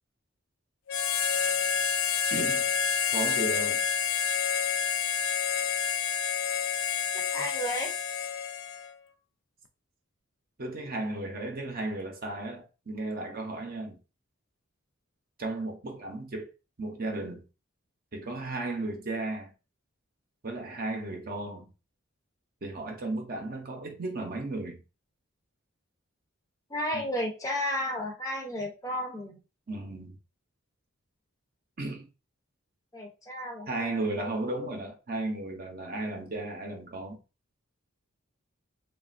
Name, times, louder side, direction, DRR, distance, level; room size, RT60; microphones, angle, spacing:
Harmonica, 0.9-8.9, left 8 dB, 70° left, 0.4 m, -28 dB
voice 1, 2.3-2.7 3.1-3.8 10.6-14.0 15.4-16.5 16.8-17.4 18.1-19.5 20.4-21.7 22.6-24.8 26.9-27.0 29.7-30.2 31.8-32.1 33.7-37.2, right 2 dB, 45° right, 0.7 m, -34 dB
voice 2, 7.1-8.0 26.7-29.4 32.9-34.1, left 1 dB, 15° left, 0.5 m, -33 dB
3.1 x 2.3 x 2.4 m
head